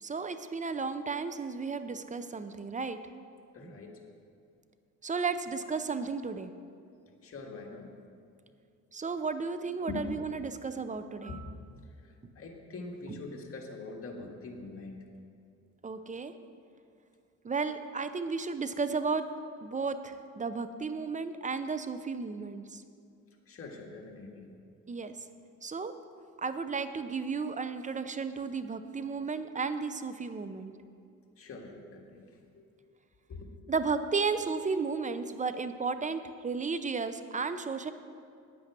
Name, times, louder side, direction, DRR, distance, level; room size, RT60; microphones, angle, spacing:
voice 1, 0.0-3.0 3.6-3.8 5.0-6.5 8.9-11.4 12.2-12.3 13.1-13.2 15.8-16.3 17.4-19.3 19.6-22.8 24.9-25.1 25.6-25.9 26.4-30.7 33.7-37.9, right 4 dB, 25° right, 10 dB, 0.6 m, -33 dB
voice 2, 3.5-4.0 7.2-7.9 9.9-10.1 11.3-11.5 12.0-15.0 23.5-24.6 31.4-32.7 33.3-33.5, left 3 dB, 50° left, 0 dB, 1.9 m, -43 dB
9.6 x 8.8 x 6.0 m, 2.4 s
cardioid pair, 90°, 30 cm